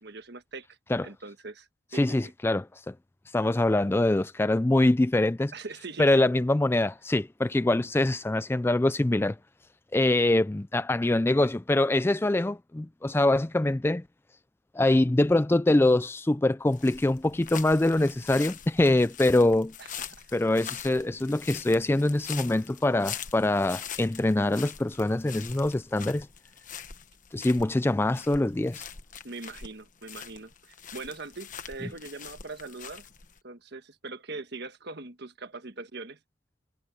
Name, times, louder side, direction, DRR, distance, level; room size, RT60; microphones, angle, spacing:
voice 1, 0.0-0.8 1.0-2.3 5.5-6.3 19.8-20.3 27.8-28.1 29.2-33.0 33.4-36.2, right 3 dB, 55° right, 1.4 m, -42 dB
voice 2, 1.9-2.9 3.3-5.5 6.0-9.4 9.9-14.0 14.7-19.7 20.3-26.3 27.3-28.8, left 2 dB, 10° left, 0.3 m, -24 dB
sound 1, 16.7-33.4, left 8 dB, 40° left, 1.3 m, -43 dB
head